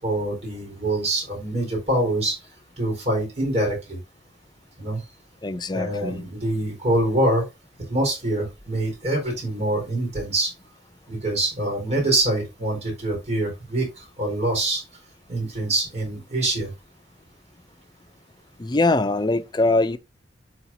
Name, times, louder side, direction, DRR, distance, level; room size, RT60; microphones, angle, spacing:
voice 1, 0.0-2.4 2.8-4.0 4.8-5.0 5.7-7.4 7.9-10.5 11.1-14.8 15.3-16.7, right 1 dB, 35° right, 4.4 m, -25 dB
voice 2, 5.4-6.3 18.6-20.0, left 2 dB, 25° left, 0.5 m, -22 dB
12.0 x 4.4 x 2.7 m
head